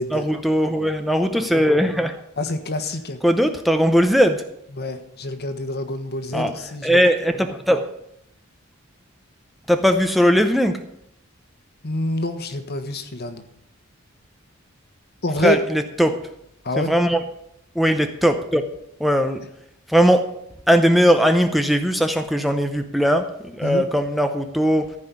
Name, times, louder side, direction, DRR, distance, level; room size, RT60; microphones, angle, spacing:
voice 1, 0.1-2.1 3.2-4.4 6.3-6.5 6.8-7.8 9.7-10.8 15.4-16.2 16.8-17.2 17.8-18.6 19.0-19.4 19.9-20.3 20.7-24.9, equal, ahead, 6 dB, 0.6 m, -19 dB
voice 2, 2.4-3.2 4.7-7.0 11.8-13.4 15.2-15.6 16.6-16.9 23.6-23.8, left 1 dB, 50° left, 8 dB, 1.3 m, -26 dB
14.5 x 5.4 x 9.6 m, 0.77 s
head